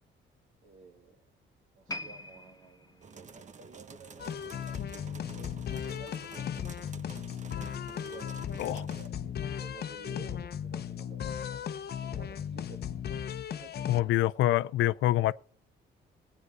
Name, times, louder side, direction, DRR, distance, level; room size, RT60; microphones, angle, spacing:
voice 1, 0.6-1.3 1.7-6.6 7.8-14.2, right 4 dB, 85° right, 2.0 m, -53 dB
sound 1, 1.9-5.2 5.5-5.8 6.4-6.5, left 1 dB, 20° left, 1.2 m, -45 dB
sound 2, 3.0-9.1, right 5 dB, 35° right, 0.9 m, -50 dB
sound 3, 4.2-14.0, left 9 dB, 55° left, 0.8 m, -36 dB
voice 2, 13.9-15.3, left 14 dB, 80° left, 0.5 m, -26 dB
15.5 x 9.6 x 4.8 m
cardioid pair, 90°, 20 cm